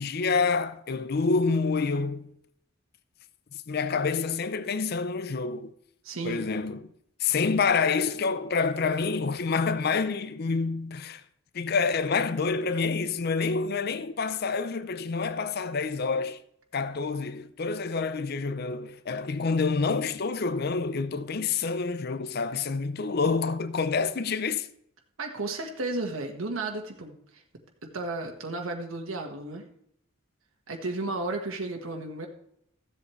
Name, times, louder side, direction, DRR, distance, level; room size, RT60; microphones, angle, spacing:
voice 1, 0.0-2.3 3.5-5.7 6.2-6.9 7.2-11.2 11.5-16.4 16.7-24.7, left 4 dB, 50° left, 0.5 m, -27 dB
voice 2, 6.0-6.5 25.2-27.4 27.9-29.6 30.7-32.3, right 2 dB, 80° right, 1.5 m, -33 dB
15.0 x 7.9 x 3.2 m
head